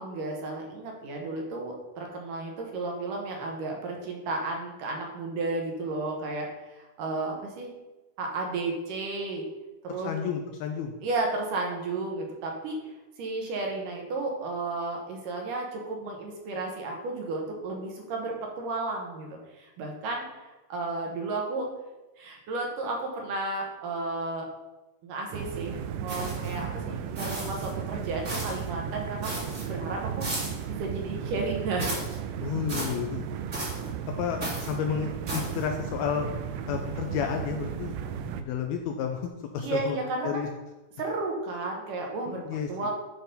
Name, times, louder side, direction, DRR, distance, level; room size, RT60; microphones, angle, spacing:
voice 1, 0.0-7.7 8.2-9.4 9.8-10.1 11.0-12.8 13.2-21.7 22.2-24.5 25.0-29.3 29.6-31.9 39.6-40.3 41.0-42.4 42.7-42.9, right 3 dB, 70° right, 1 dB, 2.2 m, -33 dB
voice 2, 10.0-10.9 32.3-33.3 34.2-36.3 36.7-37.9 38.4-39.3 39.5-40.0 40.2-40.5 42.3-42.7, left 7 dB, 90° left, 4 dB, 2.2 m, -31 dB
sound 1, 25.3-38.4, right 8 dB, 85° right, 2.8 m, -35 dB
sound 2, 26.1-26.6 27.1-27.7 28.2-28.7 29.2-29.7 30.2-30.7 31.8-32.2 32.7-33.0 33.5-33.9 34.4-34.7 35.3-35.6, right 1 dB, 35° right, 1.3 m, -35 dB
11.5 x 3.9 x 5.3 m, 1.1 s
omnidirectional pair, 5.0 m